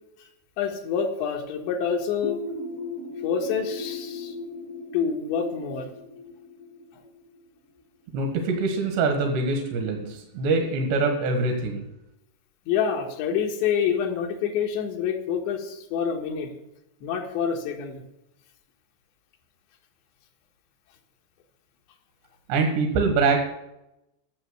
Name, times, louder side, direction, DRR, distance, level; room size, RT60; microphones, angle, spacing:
voice 1, 0.6-2.4 3.2-4.3 4.9-5.9 12.7-16.5 17.0-18.0, left 7 dB, 85° left, 1 dB, 3.7 m, -27 dB
sound 1, 2.2-7.8, left 3 dB, 60° left, 1.5 m, -37 dB
voice 2, 8.1-11.8 22.5-23.4, right 3 dB, 75° right, 3 dB, 3.7 m, -24 dB
11.5 x 7.2 x 8.0 m, 0.88 s
omnidirectional pair, 5.0 m